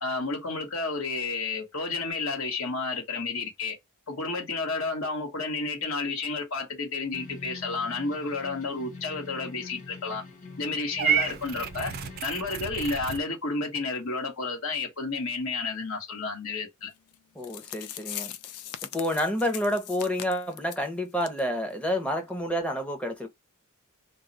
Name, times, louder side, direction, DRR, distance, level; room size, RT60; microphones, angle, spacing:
voice 1, 0.0-3.8 4.1-10.2 10.6-11.9 12.2-16.9, left 3 dB, 65° left, 1.0 m, -31 dB
sound 1, 7.1-12.2, left 3 dB, 35° left, 0.9 m, -44 dB
Purr / Meow, 11.0-13.2, right 9 dB, 45° right, 0.3 m, -30 dB
sound 2, 17.1-17.2 17.4-20.9 21.2-21.4 21.7-21.8 22.3-22.4, left 11 dB, 80° left, 0.4 m, -40 dB
voice 2, 17.3-18.3 18.9-23.3, equal, 5° left, 0.7 m, -29 dB
2.2 x 2.1 x 3.8 m
head